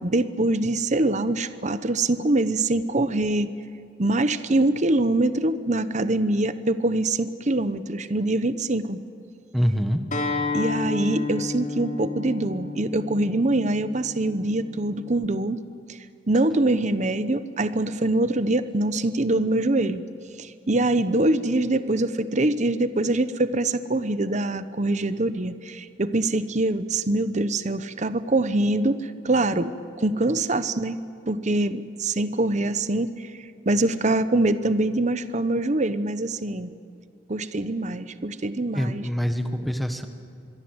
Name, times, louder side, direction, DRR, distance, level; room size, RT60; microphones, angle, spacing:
voice 1, 0.0-3.5 4.0-9.0 10.5-15.6 15.9-16.0 16.3-20.0 20.4-31.0 31.3-33.3 33.7-36.7 37.3-39.0, right 2 dB, 40° right, 13 dB, 1.0 m, -24 dB
voice 2, 9.5-10.0 38.7-40.1, equal, ahead, 7 dB, 1.3 m, -25 dB
Acoustic guitar, 10.1-15.3, left 3 dB, 45° left, 4.1 m, -31 dB
25.5 x 22.5 x 8.1 m, 2.5 s
head